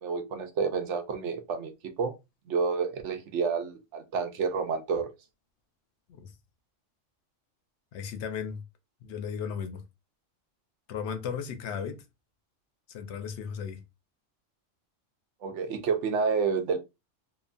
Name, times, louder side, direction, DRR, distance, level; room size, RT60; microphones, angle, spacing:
voice 1, 0.0-1.7 2.0-2.1 2.5-5.1 15.4-16.8, right 5 dB, 70° right, 0.9 m, -29 dB
voice 2, 7.9-8.6 9.0-9.8 10.9-12.0 12.9-13.8, left 7 dB, 65° left, 0.8 m, -35 dB
2.9 x 2.2 x 2.4 m
omnidirectional pair, 1.3 m